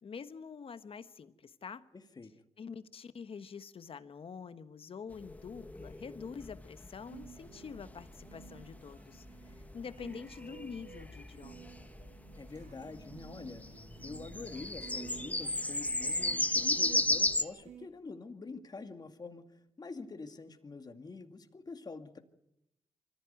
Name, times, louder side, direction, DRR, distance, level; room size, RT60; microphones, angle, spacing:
voice 1, 0.0-1.8 2.6-9.2 9.7-11.7, left 6 dB, 55° left, 12 dB, 1.4 m, -46 dB
voice 2, 1.9-2.3 12.3-13.6 14.0-22.2, left 3 dB, 35° left, 7 dB, 2.2 m, -46 dB
sound 1, 5.1-17.4, left 1 dB, 15° left, 1.3 m, -35 dB
sound 2, 7.1-17.9, right 7 dB, 85° right, 2.5 m, -53 dB
24.5 x 15.0 x 9.4 m, 0.82 s
cardioid pair, 80°, 11 cm